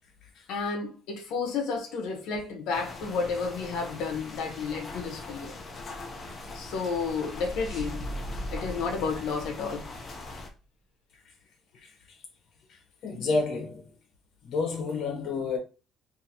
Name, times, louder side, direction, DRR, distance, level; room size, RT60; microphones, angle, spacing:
voice 1, 0.5-5.6 6.5-8.2 8.5-9.9, left 5 dB, 70° left, 0.9 m, -31 dB
sound 1, 2.7-10.5, left 2 dB, 25° left, 0.6 m, -42 dB
sound 2, 7.2-10.4, equal, 5° left, 1.8 m, -39 dB
voice 2, 11.7-12.2 12.7-13.9 14.4-15.6, left 3 dB, 50° left, 1.0 m, -31 dB
4.0 x 2.7 x 2.9 m
cardioid pair, 175°, 0 cm